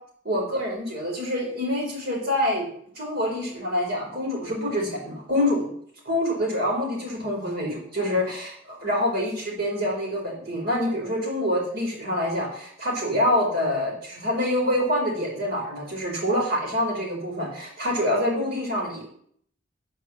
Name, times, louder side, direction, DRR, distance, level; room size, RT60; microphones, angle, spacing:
voice 1, 0.3-2.7 3.0-5.7 6.0-19.1, left 1 dB, 50° right, -1 dB, 4.5 m, -26 dB
13.0 x 5.0 x 7.3 m, 0.64 s
head